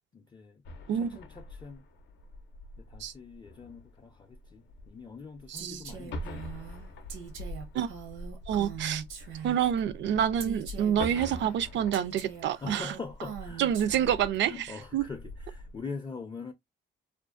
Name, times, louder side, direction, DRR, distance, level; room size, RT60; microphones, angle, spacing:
voice 1, 0.1-0.6 0.9-1.8 2.8-6.4 8.7-9.0 12.6-14.0 14.4-16.5, left 4 dB, 25° left, 0.4 m, -43 dB
sound 1, 0.7-15.8, left 1 dB, 70° left, 0.5 m, -44 dB
voice 2, 5.5-5.8 7.7-7.9 8.5-9.0 9.4-12.9 13.6-14.7 14.9-15.0, right 9 dB, 65° right, 0.4 m, -27 dB
Female speech woman speaking, 5.6-9.8 10.4-14.4, right 7 dB, 85° right, 0.8 m, -42 dB
2.5 x 2.2 x 2.4 m
cardioid pair, 90°, 20 cm